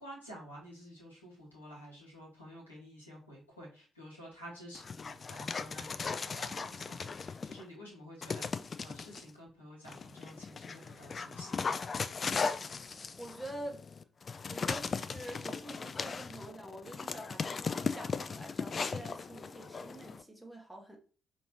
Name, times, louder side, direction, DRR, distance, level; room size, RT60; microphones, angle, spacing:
voice 1, 0.0-8.5 8.8-11.8, equal, 85° left, 1.0 m, -50 dB
Dog, 4.7-7.6 8.2-9.2 9.9-20.2, left 5 dB, 40° left, 0.3 m, -37 dB
voice 2, 13.2-13.8 14.5-21.0, right 1 dB, ahead, 0.8 m, -46 dB
5.3 x 2.7 x 2.8 m
figure-of-eight pair, 40°, 0 cm